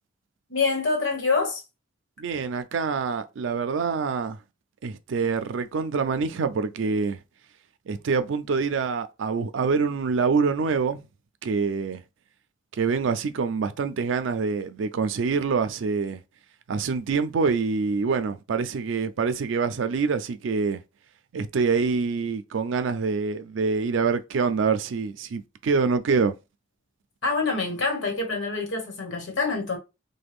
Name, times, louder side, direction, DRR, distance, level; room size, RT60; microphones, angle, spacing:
voice 1, 0.5-1.6 27.2-29.8, left 4 dB, 75° left, 1.1 m, -26 dB
voice 2, 2.2-4.4 4.8-7.2 7.9-11.0 11.4-12.0 12.7-16.2 16.7-20.8 21.3-26.3, right 5 dB, 75° right, 0.4 m, -25 dB
3.2 x 2.2 x 3.5 m
head